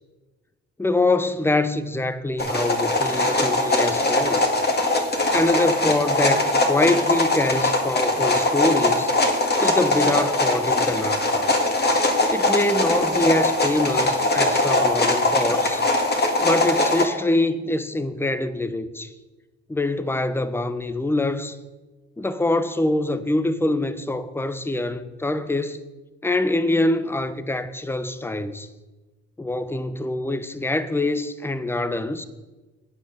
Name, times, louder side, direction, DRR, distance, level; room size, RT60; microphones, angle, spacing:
voice 1, 0.8-4.4 5.3-9.1 9.6-11.5 12.3-15.9 16.4-19.1 19.7-21.6 22.2-25.9 26.2-28.7 29.4-32.2, left 2 dB, 10° left, 0.7 m, -24 dB
sound 1, 2.4-17.0, left 2 dB, 35° left, 2.0 m, -21 dB
8.6 x 8.4 x 6.6 m
cardioid pair, 90°, 30 cm